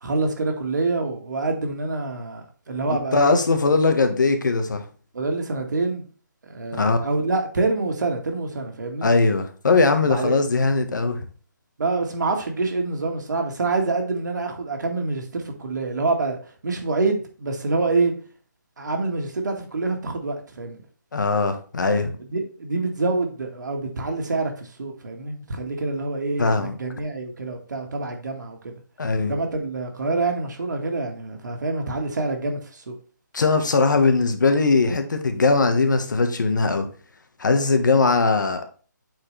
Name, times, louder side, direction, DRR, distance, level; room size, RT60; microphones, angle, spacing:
voice 1, 0.0-3.4 5.1-6.1 6.4-9.1 10.0-10.3 11.8-18.1 18.8-20.8 22.3-28.7 29.2-32.9, right 3 dB, 65° right, 1.7 m, -26 dB
voice 2, 2.9-4.8 6.7-7.0 9.0-11.2 21.1-22.1 26.4-26.8 29.0-29.3 33.3-36.9 37.4-38.6, left 3 dB, 70° left, 1.3 m, -20 dB
8.6 x 4.4 x 3.2 m
hypercardioid pair, 170°, 11 cm